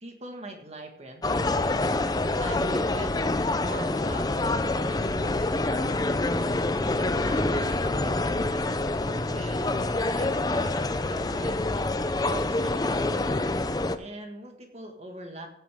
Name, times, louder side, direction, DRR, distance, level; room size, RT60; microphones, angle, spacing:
voice 1, 0.0-1.7 2.4-3.3 3.7-5.9 6.8-8.7 9.1-10.7 11.1-11.9 12.2-13.1 14.0-15.5, right 1 dB, 35° right, 3 dB, 1.7 m, -43 dB
sound 1, 1.2-14.0, left 2 dB, 20° left, 0.5 m, -26 dB
15.5 x 8.3 x 3.6 m, 0.76 s
head